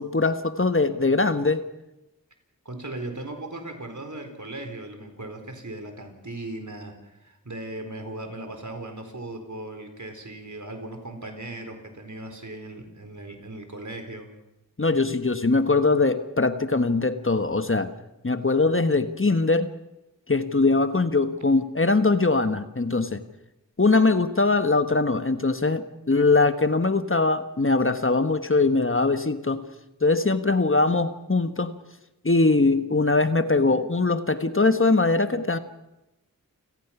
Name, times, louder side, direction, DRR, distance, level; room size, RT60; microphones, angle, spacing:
voice 1, 0.0-1.6 14.8-17.9 18.2-19.7 20.3-23.2 23.8-29.6 30.0-31.7 32.2-35.6, left 3 dB, 40° left, 10 dB, 1.3 m, -22 dB
voice 2, 2.6-14.3, right 2 dB, 60° right, 5 dB, 4.5 m, -38 dB
29.0 x 16.5 x 6.0 m, 0.94 s
wide cardioid pair, 45°, 34 cm